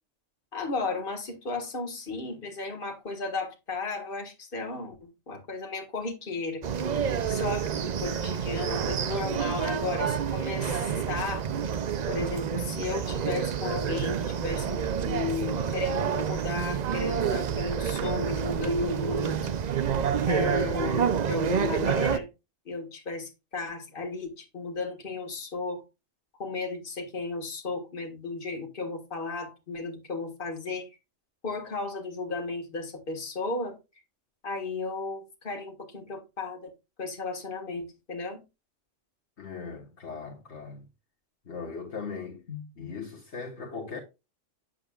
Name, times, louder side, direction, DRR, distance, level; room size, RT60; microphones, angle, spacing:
voice 1, 0.5-6.6 7.3-11.5 12.1-19.5 20.2-22.3 22.7-25.8 26.4-30.9 31.4-33.8 34.4-36.7 37.0-38.4, left 3 dB, 45° left, 1.9 m, -34 dB
sound 1, 6.6-22.2, right 7 dB, 55° right, 0.5 m, -28 dB
voice 2, 39.4-40.9 41.4-44.0, left 5 dB, 60° left, 1.7 m, -39 dB
8.9 x 7.7 x 2.4 m
omnidirectional pair, 1.3 m